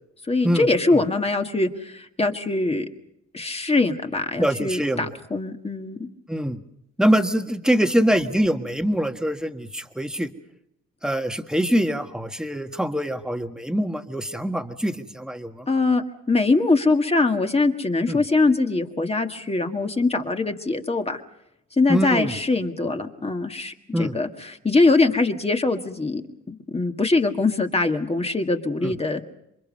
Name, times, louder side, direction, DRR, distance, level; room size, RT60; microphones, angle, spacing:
voice 1, 0.3-2.8 3.3-6.1 15.7-21.2 21.8-26.2 26.5-29.2, left 3 dB, 20° left, 5 dB, 1.8 m, -22 dB
voice 2, 4.4-5.1 6.3-6.6 7.0-10.3 11.0-15.7 18.1-18.2 21.9-22.4 23.9-24.2 28.8-29.0, equal, ahead, 6 dB, 1.6 m, -24 dB
27.5 x 23.5 x 5.4 m, 0.79 s
cardioid pair, 90°, 30 cm